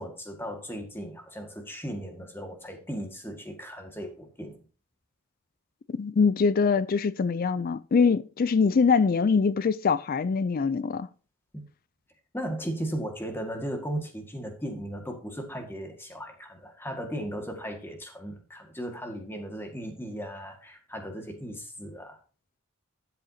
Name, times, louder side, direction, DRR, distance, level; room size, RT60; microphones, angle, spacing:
voice 1, 0.0-4.6 11.5-11.6 12.3-22.2, equal, 10° left, 1.8 m, -36 dB
voice 2, 6.0-11.1, left 5 dB, 40° left, 0.4 m, -23 dB
12.5 x 7.9 x 2.8 m
head